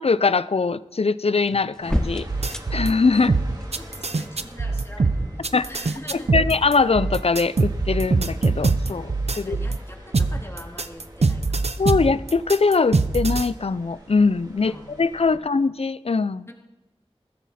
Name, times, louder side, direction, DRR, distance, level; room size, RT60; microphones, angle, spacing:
voice 1, 0.0-3.3 5.5-5.7 6.1-9.6 11.8-16.5, left 4 dB, 70° left, 16 dB, 0.5 m, -22 dB
sound 1, 1.5-7.9, equal, 5° left, 1.0 m, -34 dB
sound 2, 1.8-15.4, equal, 40° right, 4.0 m, -44 dB
sound 3, 2.3-2.9 3.3-9.8 10.1-13.5, right 3 dB, 85° right, 0.7 m, -23 dB
voice 2, 3.7-6.5 9.3-11.9 14.6-15.0 15.3-15.4 16.5-16.6, left 1 dB, 25° left, 0 dB, 2.9 m, -43 dB
21.0 x 15.0 x 4.3 m, 0.98 s
wide cardioid pair, 45°, 11 cm